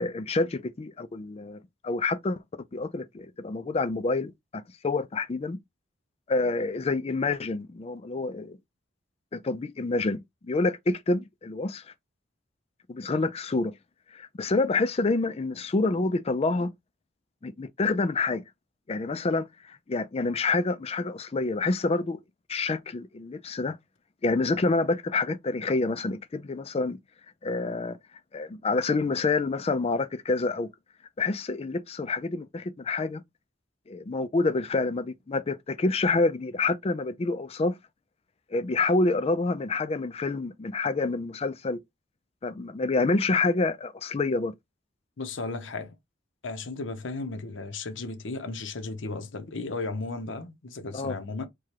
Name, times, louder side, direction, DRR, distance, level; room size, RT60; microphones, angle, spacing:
voice 1, 0.0-2.4 2.7-5.6 6.3-8.6 9.3-11.8 12.9-13.7 14.1-16.7 17.4-18.4 18.9-22.2 22.5-23.8 24.2-27.0 27.4-28.0 28.3-30.7 31.2-33.2 33.9-37.7 38.5-41.8 42.4-44.5 50.9-51.1, left 3 dB, 30° left, 0.4 m, -27 dB
voice 2, 45.2-45.9 46.4-51.5, left 3 dB, 70° left, 0.8 m, -35 dB
4.7 x 2.3 x 2.9 m
head